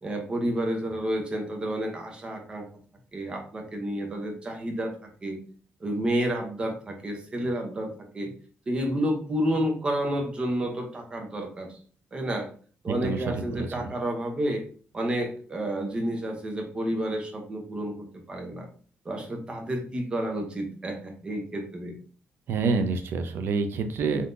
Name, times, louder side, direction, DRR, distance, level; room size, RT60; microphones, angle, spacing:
voice 1, 0.0-2.7 3.1-4.9 5.2-5.4 5.8-8.3 8.7-11.8 12.1-12.5 12.8-14.6 14.9-18.7 19.0-21.9, right 1 dB, 20° right, 3 dB, 0.7 m, -30 dB
voice 2, 12.9-13.9 22.5-24.3, right 4 dB, 60° right, 8 dB, 0.4 m, -28 dB
3.6 x 2.7 x 2.5 m, 0.43 s
cardioid pair, 175°, 4 cm